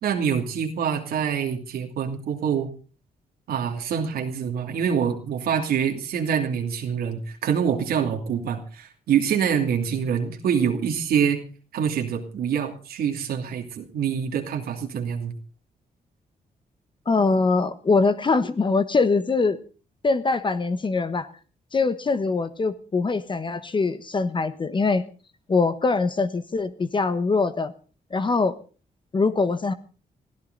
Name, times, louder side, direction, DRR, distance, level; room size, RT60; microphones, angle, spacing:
voice 1, 0.0-2.7 3.5-11.4 11.7-15.3, right 7 dB, 90° right, 3 dB, 2.7 m, -25 dB
voice 2, 17.1-19.6 20.0-21.3 21.7-25.0 25.5-27.7 28.1-28.6 29.1-29.7, left 4 dB, 30° left, 11 dB, 1.2 m, -23 dB
22.5 x 14.5 x 4.0 m, 0.38 s
cardioid pair, 105°, 15 cm